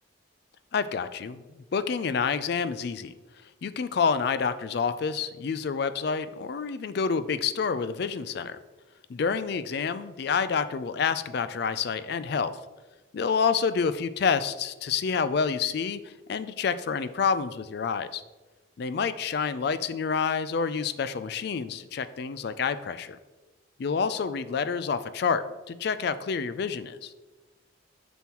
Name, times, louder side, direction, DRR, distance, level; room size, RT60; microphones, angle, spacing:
voice 1, 0.7-1.4 1.7-3.1 3.6-8.6 9.1-12.6 13.1-18.2 18.8-23.2 23.8-27.1, left 6 dB, 50° left, 13 dB, 0.3 m, -28 dB
6.9 x 6.2 x 2.9 m, 1.2 s
head